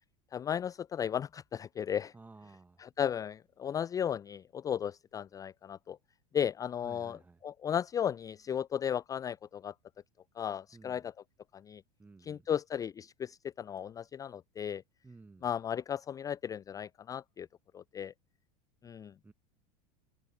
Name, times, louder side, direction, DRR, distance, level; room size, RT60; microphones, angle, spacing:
voice 1, 0.3-2.1 2.8-6.0 6.3-9.7 10.4-11.1 11.7-11.8 12.2-14.8 15.4-17.5 17.7-18.1 18.8-19.1, left 9 dB, 20° left, 0.4 m, -35 dB
voice 2, 2.1-2.8 6.8-7.4 10.7-11.0 12.0-12.5 15.0-15.5 19.2-19.3, right 3 dB, 10° right, 1.2 m, -54 dB
open air
figure-of-eight pair, 80°, 20 cm